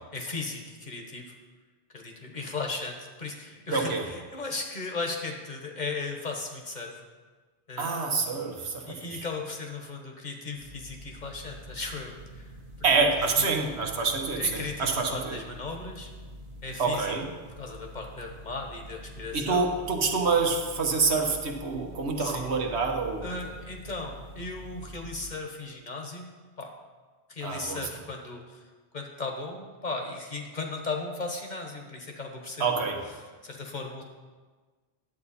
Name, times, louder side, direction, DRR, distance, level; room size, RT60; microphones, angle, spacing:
voice 1, 0.1-1.3 1.9-7.0 7.7-8.1 8.9-12.5 13.2-13.5 14.4-16.1 16.6-17.1 17.6-19.7 22.2-22.4 23.2-26.3 26.6-26.7 27.3-28.7 28.9-32.8 33.4-34.0, left 3 dB, 45° left, 2 dB, 1.2 m, -36 dB
voice 2, 3.7-4.0 7.8-9.2 12.8-15.4 16.8-17.2 19.3-23.3 27.4-27.8 32.6-33.0, right 4 dB, 80° right, 2 dB, 1.4 m, -27 dB
sound 1, 10.6-25.3, equal, 45° right, 1.1 m, -46 dB
9.9 x 8.1 x 4.2 m, 1.4 s
omnidirectional pair, 1.1 m